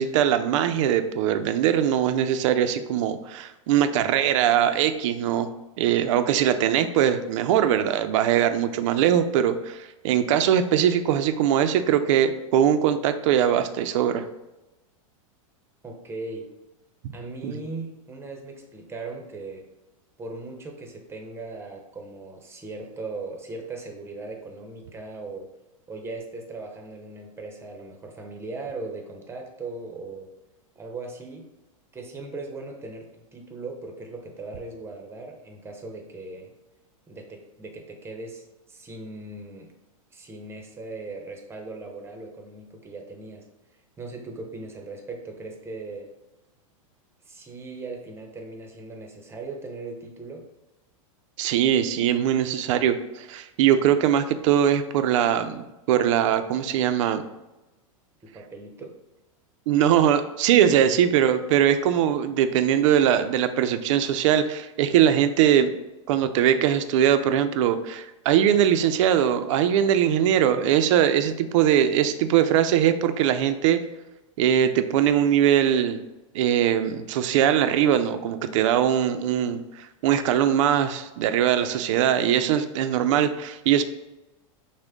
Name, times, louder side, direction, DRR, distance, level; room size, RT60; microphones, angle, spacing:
voice 1, 0.0-5.5 5.8-14.2 17.4-17.5 51.4-57.2 59.7-65.7 66.1-73.8 74.4-76.0 76.3-83.8, right 10 dB, 60° right, 9 dB, 0.5 m, -21 dB
voice 2, 15.8-16.5 17.1-19.7 20.2-25.5 25.9-30.3 30.8-31.5 31.9-36.5 37.1-39.7 40.1-43.4 44.0-46.1 47.2-50.4 58.3-58.9 60.8-60.9, right 3 dB, 15° right, 2 dB, 0.8 m, -38 dB
6.2 x 2.1 x 3.6 m, 1.0 s
hypercardioid pair, 120°, 18 cm